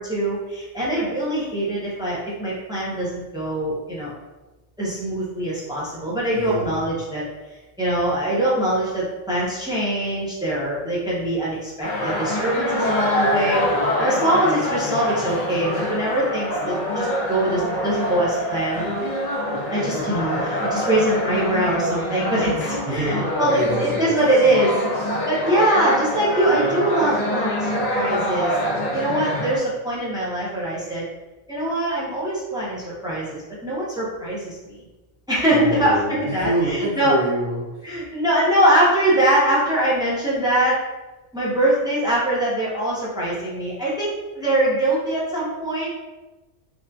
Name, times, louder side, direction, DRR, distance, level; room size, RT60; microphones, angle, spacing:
voice 1, 0.0-4.1 4.8-7.2 7.8-13.7 14.0-18.9 19.7-28.6 28.9-31.0 31.5-34.8 35.3-37.2 37.8-40.8 41.3-45.9, right 1 dB, 5° right, -7 dB, 0.4 m, -23 dB
voice 2, 6.4-6.9 22.8-24.2 35.5-37.9, right 1 dB, 90° right, -5 dB, 1.2 m, -27 dB
sound 1, 11.8-29.6, left 1 dB, 60° left, 0.4 m, -25 dB
2.9 x 2.5 x 2.3 m, 1.1 s
omnidirectional pair, 1.3 m